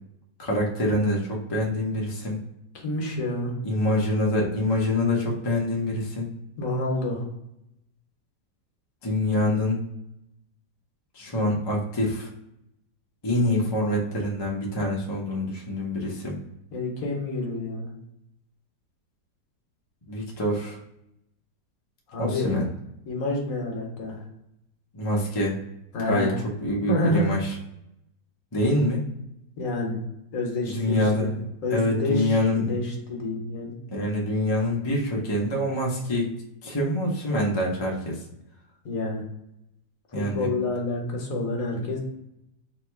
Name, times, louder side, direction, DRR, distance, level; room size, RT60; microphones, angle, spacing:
voice 1, 0.4-2.4 3.6-6.3 9.0-9.9 11.1-12.3 13.2-16.4 20.1-20.8 22.2-22.6 24.9-25.6 26.1-26.3 26.6-27.5 28.5-29.0 30.7-31.4 31.7-32.8 33.9-36.3 36.6-38.2 40.1-40.5, left 1 dB, 35° left, -2 dB, 0.4 m, -25 dB
voice 2, 2.8-3.5 6.6-7.2 16.7-17.9 22.1-22.5 23.1-24.2 25.9-26.4 26.9-27.3 29.6-30.0 30.3-31.1 31.6-33.7 38.8-39.2 40.1-42.0, left 2 dB, 55° left, 0 dB, 1.2 m, -28 dB
3.0 x 2.8 x 4.4 m, 0.83 s
omnidirectional pair, 1.9 m